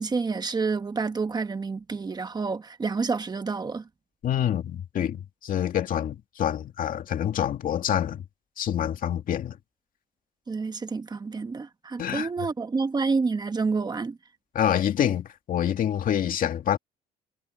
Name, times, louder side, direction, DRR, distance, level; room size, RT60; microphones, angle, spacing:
voice 1, 0.0-3.8 10.5-14.2, right 4 dB, 25° right, 1.4 m, -28 dB
voice 2, 4.2-8.2 8.6-9.6 12.0-12.3 14.5-16.8, left 10 dB, 55° left, 2.4 m, -26 dB
cardioid pair, 110°, 17 cm